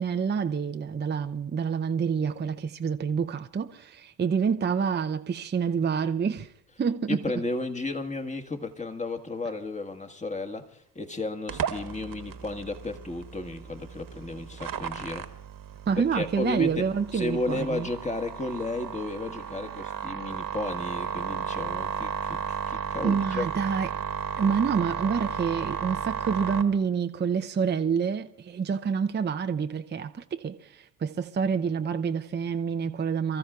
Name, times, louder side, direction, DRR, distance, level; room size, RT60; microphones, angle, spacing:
voice 1, 0.0-6.5 6.8-7.2 15.9-17.9 23.0-24.0 24.4-33.4, right 6 dB, 20° right, 0.7 m, -27 dB
voice 2, 7.1-15.3 16.0-16.9 17.1-23.5, left 2 dB, 15° left, 1.6 m, -33 dB
sound 1, 11.5-26.6, right 7 dB, 45° right, 1.5 m, -34 dB
28.0 x 14.0 x 2.4 m
hypercardioid pair, 55°, 49 cm